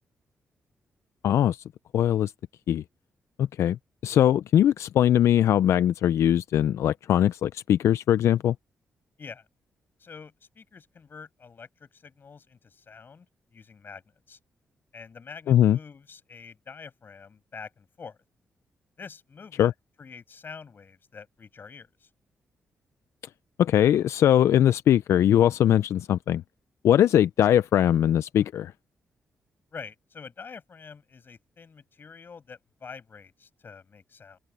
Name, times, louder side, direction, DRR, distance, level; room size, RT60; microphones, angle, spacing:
voice 1, 1.2-1.6 1.9-2.3 2.7-2.8 3.4-8.5 15.5-15.8 19.6-19.7 23.6-26.4 26.8-28.7, left 11 dB, 80° left, 0.4 m, -21 dB
voice 2, 10.0-13.3 13.5-14.4 14.9-18.2 19.0-19.7 20.0-22.1 29.7-34.4, left 5 dB, 45° left, 7.9 m, -46 dB
cardioid pair, 95°, 5 cm